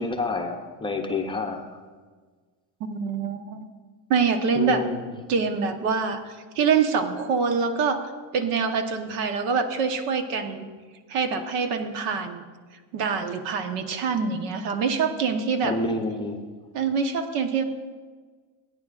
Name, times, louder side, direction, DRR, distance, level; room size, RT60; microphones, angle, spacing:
voice 1, 0.0-1.7 4.5-5.1 15.6-16.4, left 3 dB, 10° left, 3 dB, 0.6 m, -28 dB
voice 2, 2.8-3.7 4.1-4.8 5.3-6.2 6.5-8.0 8.3-10.7 11.1-12.4 12.9-15.8 16.7-17.6, right 5 dB, 80° right, 7 dB, 1.2 m, -25 dB
18.0 x 9.5 x 2.5 m, 1.5 s
cardioid pair, 135°, 46 cm